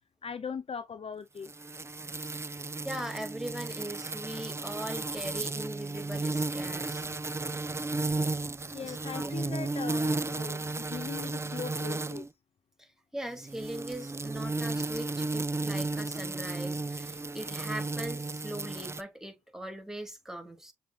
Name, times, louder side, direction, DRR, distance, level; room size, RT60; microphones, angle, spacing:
voice 1, 0.2-1.5 8.7-12.3, left 6 dB, 45° left, 0.5 m, -39 dB
sound 1, 1.4-12.3 13.3-19.0, right 3 dB, 20° right, 0.4 m, -34 dB
voice 2, 2.8-7.1 8.8-9.3 12.8-20.7, right 1 dB, 5° right, 2.1 m, -40 dB
6.8 x 3.1 x 2.4 m
supercardioid pair, 50°, 14 cm